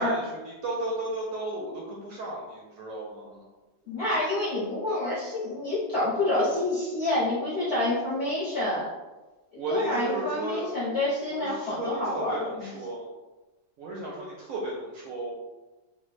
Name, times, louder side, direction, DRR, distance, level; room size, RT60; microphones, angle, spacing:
voice 1, 0.0-3.4 9.6-11.0 11.3-13.1 13.8-15.3, right 1 dB, 70° right, -2 dB, 0.8 m, -34 dB
voice 2, 3.9-8.9 9.7-12.7, left 1 dB, 50° left, -9 dB, 0.9 m, -28 dB
3.2 x 2.2 x 3.2 m, 1.2 s
omnidirectional pair, 1.7 m